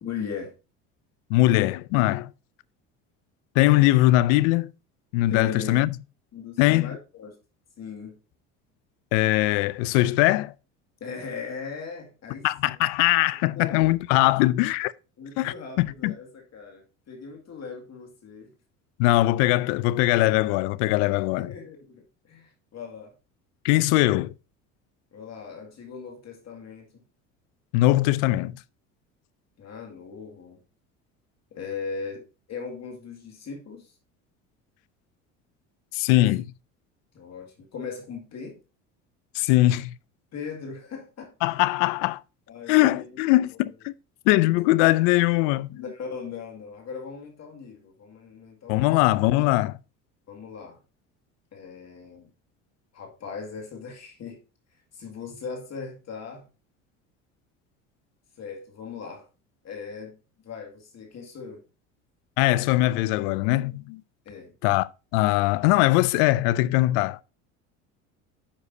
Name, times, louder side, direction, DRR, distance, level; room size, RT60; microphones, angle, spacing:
voice 1, 0.0-0.5 5.3-5.7 6.3-7.3 7.8-8.1 11.0-12.5 13.6-13.9 15.2-18.5 21.1-23.1 25.1-26.9 29.6-30.6 31.5-33.9 37.1-38.6 40.3-41.3 42.5-43.2 43.5-43.6 45.7-49.1 50.3-50.8 51.5-52.3 52.9-54.4 54.9-56.5 58.4-59.3 59.6-60.2 60.4-61.6 64.3-64.5, left 5 dB, 45° left, 2.2 m, -39 dB
voice 2, 1.3-2.3 3.6-4.7 5.1-6.0 6.6-7.0 9.1-10.5 12.4-14.9 15.4-16.1 19.0-21.5 23.6-24.3 27.7-28.6 35.9-36.5 39.3-39.9 41.4-42.2 42.7-43.9 44.3-45.8 48.7-49.8 62.4-64.0 64.6-67.2, left 17 dB, 75° left, 0.5 m, -21 dB
10.0 x 6.3 x 2.7 m
hypercardioid pair, 80°, 37 cm